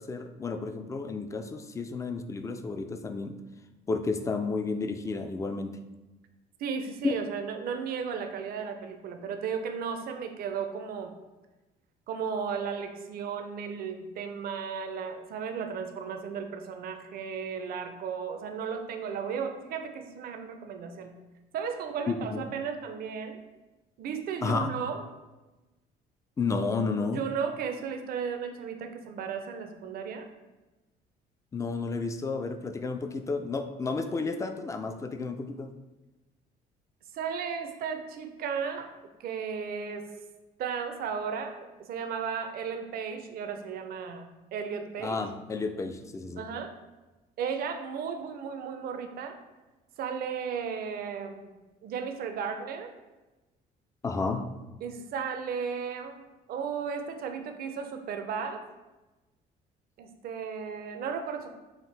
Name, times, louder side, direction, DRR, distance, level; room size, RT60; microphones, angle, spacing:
voice 1, 0.0-3.4 3.9-5.8 7.0-7.1 22.1-22.4 24.4-24.7 26.4-27.2 31.5-35.7 45.0-46.5 54.0-54.5, left 4 dB, 20° left, 7 dB, 0.3 m, -31 dB
voice 2, 6.6-11.1 12.1-21.2 21.5-23.4 24.0-25.0 27.0-30.3 37.1-38.9 39.2-40.1 40.6-45.2 46.4-46.7 47.4-49.4 50.0-51.5 51.8-52.9 54.8-56.2 56.5-58.6 60.0-61.5, right 6 dB, 60° right, 6 dB, 0.5 m, -35 dB
5.7 x 2.5 x 3.3 m, 1.1 s
cardioid pair, 110°, 17 cm